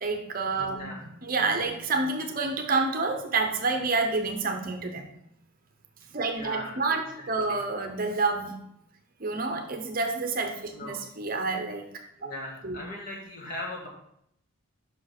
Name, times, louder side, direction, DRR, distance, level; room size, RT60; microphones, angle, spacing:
voice 1, 0.0-5.1 6.1-8.6 9.2-11.8 12.6-12.8, right 3 dB, 40° right, 5 dB, 0.8 m, -28 dB
voice 2, 6.3-6.8 7.2-7.6 10.7-11.0 12.2-13.9, left 1 dB, 40° left, -2 dB, 1.8 m, -39 dB
5.8 x 5.0 x 5.9 m, 0.75 s
head